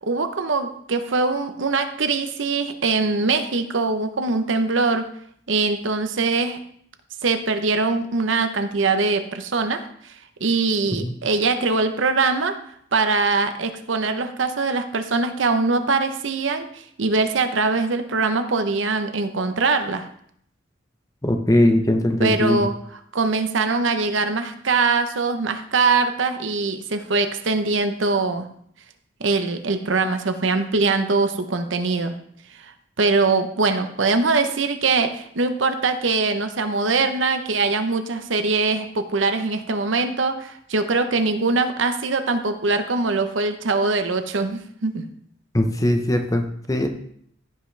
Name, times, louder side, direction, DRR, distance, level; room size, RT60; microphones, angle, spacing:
voice 1, 0.0-5.1 5.5-6.6 7.2-10.1 10.4-12.6 12.9-20.1 22.2-22.7 23.1-28.5 29.2-32.2 32.6-32.7 33.0-45.1, right 3 dB, 75° right, 8 dB, 0.9 m, -22 dB
voice 2, 21.2-22.7 45.5-46.9, left 1 dB, 15° left, 5 dB, 0.8 m, -20 dB
15.0 x 5.8 x 3.3 m, 0.66 s
head